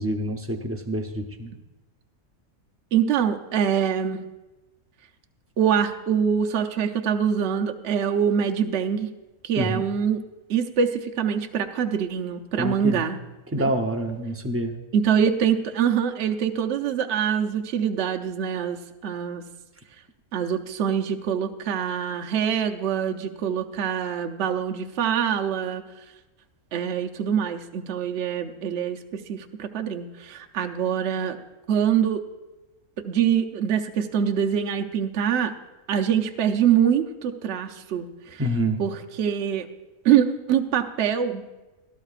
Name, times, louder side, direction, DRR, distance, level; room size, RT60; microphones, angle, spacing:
voice 1, 0.0-1.5 9.6-9.8 12.6-13.1 13.5-14.7 38.4-38.8, right 1 dB, 20° right, 3 dB, 0.3 m, -27 dB
voice 2, 2.9-4.2 5.6-9.1 9.4-10.2 10.5-13.2 13.6-13.7 14.9-19.4 20.3-25.8 26.7-31.4 31.7-32.2 33.0-35.5 35.9-38.4 38.8-39.7 40.0-41.4, right 8 dB, 60° right, 4 dB, 0.9 m, -24 dB
17.0 x 12.5 x 2.4 m, 1.1 s
omnidirectional pair, 1.5 m